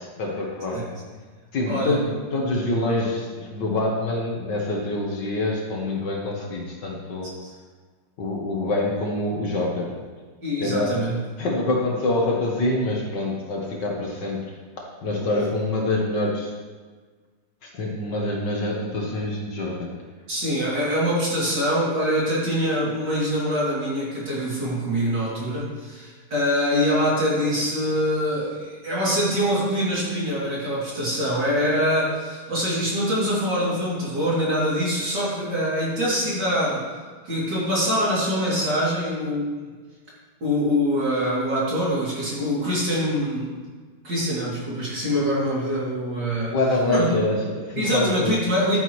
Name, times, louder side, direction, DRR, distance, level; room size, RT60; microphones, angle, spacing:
voice 1, 0.2-0.9 1.5-7.3 8.2-10.0 10.6-11.0 11.4-14.5 14.8-16.5 17.6-20.0 46.5-48.4, left 2 dB, 55° left, -1 dB, 1.7 m, -25 dB
voice 2, 1.7-2.0 10.4-11.2 20.3-36.9 37.2-39.5 40.4-43.6 44.0-46.5 46.9-47.2 47.8-48.8, equal, 50° right, -7 dB, 3.4 m, -24 dB
11.5 x 9.9 x 3.2 m, 1.5 s
omnidirectional pair, 2.4 m